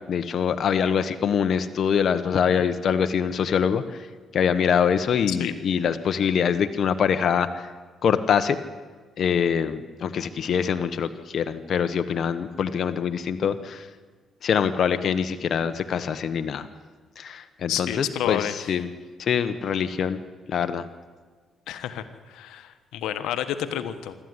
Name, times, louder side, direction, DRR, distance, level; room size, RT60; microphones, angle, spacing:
voice 1, 0.1-4.1 4.3-7.7 8.0-8.6 9.2-13.9 14.4-16.7 17.2-18.9 19.2-20.2 20.5-20.9, left 7 dB, 60° left, 9 dB, 1.0 m, -24 dB
voice 2, 17.7-18.5 21.7-24.1, left 11 dB, 90° left, 10 dB, 1.2 m, -30 dB
25.0 x 13.0 x 9.6 m, 1.4 s
cardioid pair, 90°, 0 cm